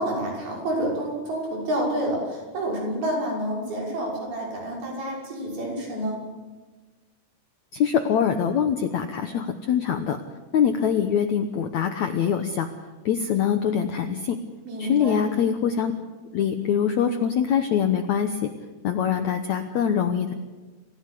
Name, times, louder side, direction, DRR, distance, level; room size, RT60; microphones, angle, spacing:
voice 1, 0.0-6.2 14.7-15.3, right 1 dB, 65° right, -2 dB, 8.0 m, -28 dB
voice 2, 7.7-10.2 10.5-12.7 13.1-14.4 14.8-15.9 16.3-18.5 18.8-20.3, left 8 dB, 75° left, 7 dB, 1.7 m, -23 dB
27.0 x 16.0 x 8.4 m, 1.3 s
omnidirectional pair, 4.7 m